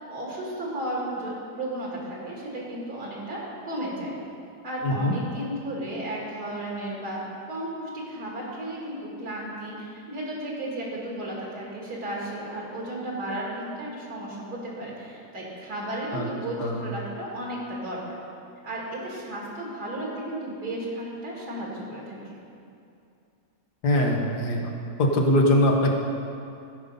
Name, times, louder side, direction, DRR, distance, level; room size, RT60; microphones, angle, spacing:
voice 1, 0.1-4.2 4.6-7.2 7.5-18.1 18.6-22.4, right 1 dB, 75° right, -4 dB, 2.7 m, -34 dB
voice 2, 4.8-5.1 16.1-16.3 16.6-16.8 23.8-24.7 25.0-25.9, left 1 dB, 90° left, 0 dB, 1.7 m, -22 dB
16.0 x 5.3 x 5.5 m, 2.6 s
omnidirectional pair, 1.7 m